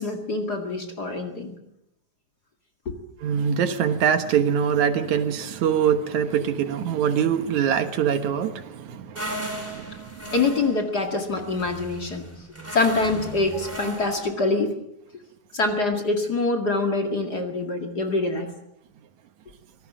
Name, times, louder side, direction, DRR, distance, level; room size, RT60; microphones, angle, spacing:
voice 1, 0.0-1.5 2.9-3.0 10.3-12.3 12.7-14.7 15.5-18.5, left 3 dB, 35° left, 4 dB, 2.3 m, -25 dB
voice 2, 3.2-10.2, right 8 dB, 70° right, 10 dB, 2.5 m, -24 dB
sound 1, 9.1-14.3, right 1 dB, 5° right, 4.1 m, -36 dB
25.5 x 18.0 x 7.5 m, 0.82 s
omnidirectional pair, 3.6 m